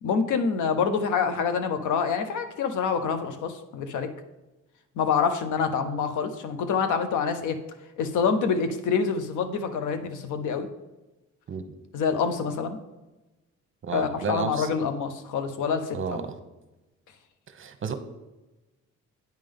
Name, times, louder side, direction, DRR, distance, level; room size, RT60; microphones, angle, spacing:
voice 1, 0.0-4.1 5.0-7.6 8.0-10.7 11.9-12.8 13.9-16.2, left 6 dB, 80° left, 9 dB, 0.8 m, -26 dB
voice 2, 13.8-14.7 15.9-16.2 17.5-17.9, right 6 dB, 40° right, 8 dB, 0.9 m, -31 dB
9.0 x 3.7 x 5.3 m, 1.1 s
cardioid pair, 90°, 30 cm